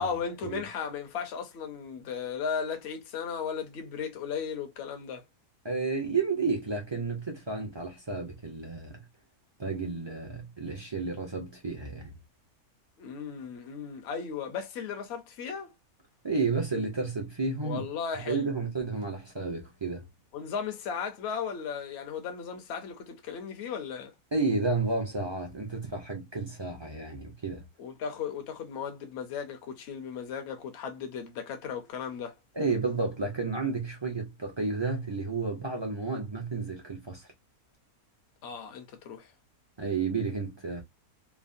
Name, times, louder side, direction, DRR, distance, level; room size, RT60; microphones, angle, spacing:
voice 1, 0.0-5.2 13.0-15.7 17.6-18.5 20.3-24.1 27.8-32.3 38.4-39.3, left 6 dB, 55° left, 0.8 m, -36 dB
voice 2, 5.6-9.0 9.6-12.1 16.2-17.8 18.3-20.1 24.3-27.6 32.5-37.3 39.8-40.8, right 4 dB, 30° right, 0.5 m, -31 dB
3.3 x 2.0 x 2.5 m
omnidirectional pair, 1.6 m